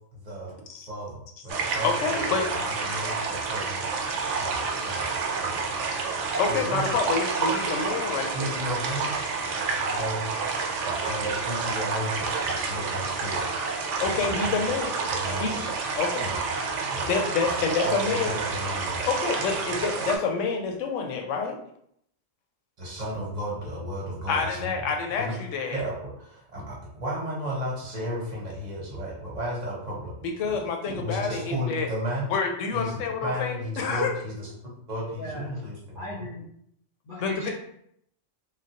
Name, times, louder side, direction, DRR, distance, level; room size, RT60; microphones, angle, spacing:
voice 1, 0.1-0.5 0.9-1.9 2.2-3.9 4.4-5.1 5.4-5.6 6.5-7.0 8.3-9.3 9.9-10.3 10.8-13.4 14.0-14.7 15.1-15.7 16.2-16.4 16.9-17.1 17.4-17.6 17.8-19.0 19.6-19.7 22.8-24.7 25.2-25.3 25.7-30.2 31.0-32.3 32.7-34.5 34.9-36.3, equal, 40° right, -4 dB, 0.7 m, -34 dB
sound 1, 1.5-20.2, right 4 dB, 75° right, 0.9 m, -29 dB
voice 2, 1.8-2.5 6.4-8.6 14.0-14.9 15.4-15.6 15.9-16.3 17.1-18.3 19.1-21.6 24.3-25.8 30.2-31.9 32.3-34.1 37.2-37.5, left 5 dB, 80° left, 3 dB, 0.9 m, -28 dB
voice 3, 35.1-35.4 35.9-36.5 37.0-37.5, left 1 dB, 50° left, -8 dB, 0.8 m, -36 dB
3.2 x 2.2 x 2.7 m, 0.71 s
omnidirectional pair, 1.3 m